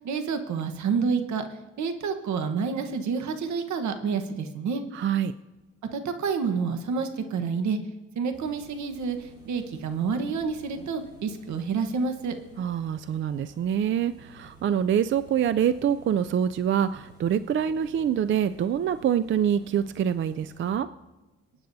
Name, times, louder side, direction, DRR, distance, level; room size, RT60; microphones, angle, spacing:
voice 1, 0.0-1.4 1.8-4.8 5.9-7.8 8.2-9.2 9.4-12.3, right 5 dB, 70° right, 6 dB, 1.2 m, -28 dB
voice 2, 4.9-5.3 12.6-20.9, right 9 dB, 40° right, 12 dB, 0.4 m, -25 dB
sound 1, 8.3-20.7, right 2 dB, 15° right, 2.6 m, -53 dB
25.5 x 9.1 x 2.7 m, 1.1 s
cardioid pair, 90°, 30 cm